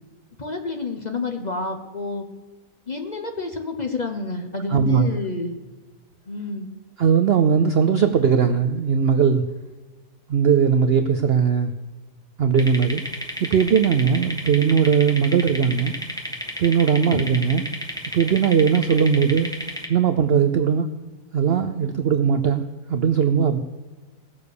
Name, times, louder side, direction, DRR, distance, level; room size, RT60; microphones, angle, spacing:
voice 1, 0.4-2.3 2.9-5.6 6.3-6.7 17.0-17.2, left 3 dB, 35° left, 5 dB, 0.8 m, -29 dB
voice 2, 4.7-5.2 7.0-9.4 10.3-11.7 12.4-13.0 13.4-15.9 16.6-17.6 18.1-19.5 19.9-20.9 21.3-22.6 22.9-23.6, right 7 dB, 60° right, 8 dB, 0.6 m, -19 dB
sound 1, 12.6-19.9, equal, 5° left, 1.4 m, -32 dB
17.5 x 7.0 x 6.6 m, 1.2 s
omnidirectional pair, 1.7 m